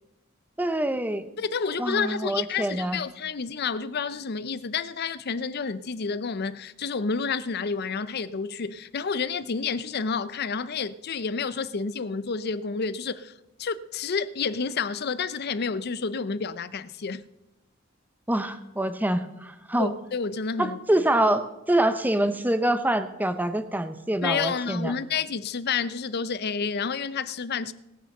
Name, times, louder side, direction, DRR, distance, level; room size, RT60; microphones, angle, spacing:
voice 1, 0.6-1.3 1.8-3.0 18.3-19.9 20.6-24.9, right 1 dB, 10° right, 0.8 m, -25 dB
voice 2, 1.4-13.3 13.6-17.2 19.8-21.1 24.2-27.7, left 5 dB, 50° left, 0.6 m, -30 dB
19.0 x 6.5 x 6.5 m
head